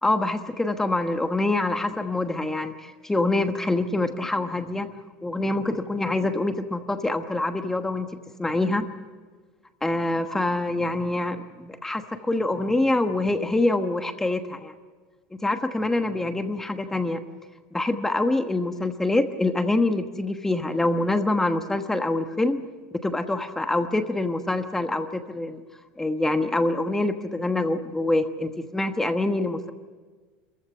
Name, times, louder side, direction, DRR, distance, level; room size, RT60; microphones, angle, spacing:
voice 1, 0.0-4.9 5.2-8.1 8.4-8.8 9.8-14.7 15.4-17.2 17.7-22.6 23.0-25.6 26.0-29.7, left 2 dB, 10° left, 7 dB, 1.2 m, -25 dB
27.0 x 15.0 x 8.4 m, 1.4 s
supercardioid pair, 135°, 5 cm